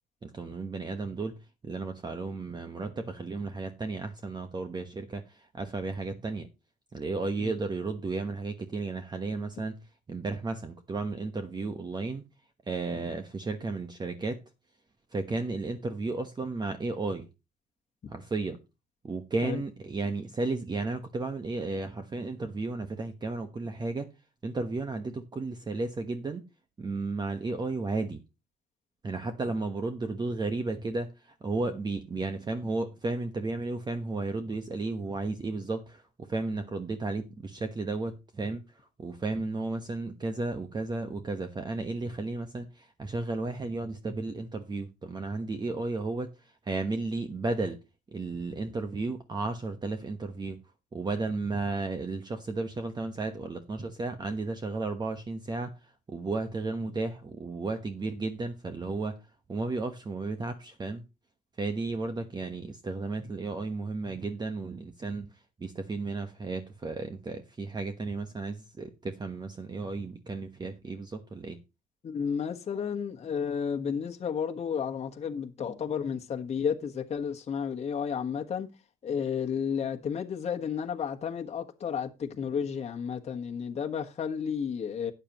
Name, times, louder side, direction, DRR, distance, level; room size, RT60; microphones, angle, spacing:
voice 1, 0.2-6.5 6.9-9.8 10.1-12.2 12.7-14.4 15.1-17.3 18.1-18.6 19.0-24.1 24.4-26.4 26.8-28.2 29.0-47.8 48.1-50.6 50.9-61.0 61.6-71.6, right 3 dB, 25° right, 1.2 m, -33 dB
voice 2, 72.0-78.7 79.0-85.1, left 7 dB, 40° left, 1.4 m, -32 dB
12.5 x 9.2 x 3.0 m
cardioid pair, 110°, 17 cm